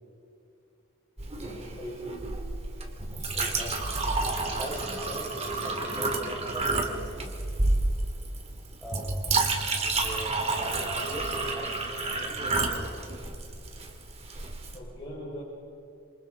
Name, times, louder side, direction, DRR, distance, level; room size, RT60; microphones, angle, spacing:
Chink clink, 1.2-14.8, right 2 dB, 30° right, 2.5 m, -30 dB
voice 1, 1.4-2.2 3.1-3.7 14.7-15.4, equal, 25° left, -7 dB, 5.2 m, -41 dB
voice 2, 4.6-7.3 8.8-9.4 9.8-13.0, right 1 dB, ahead, -4 dB, 5.2 m, -41 dB
28.0 x 27.0 x 3.8 m, 2.6 s
head